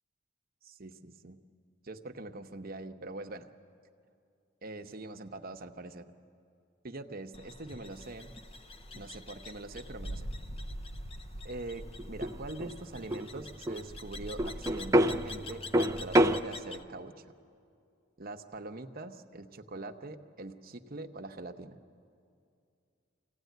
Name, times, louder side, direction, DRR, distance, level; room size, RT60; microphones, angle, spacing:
voice 1, 0.6-1.4 1.8-3.5 4.6-6.1 6.8-8.3 8.9-10.3 11.4-17.3 18.2-21.8, right 2 dB, 50° right, 5 dB, 0.9 m, -43 dB
sound 1, 7.3-16.8, left 1 dB, 30° left, 0.6 m, -44 dB
sound 2, 8.0-16.4, right 1 dB, 15° right, 0.5 m, -30 dB
24.5 x 16.5 x 9.3 m, 2.4 s
head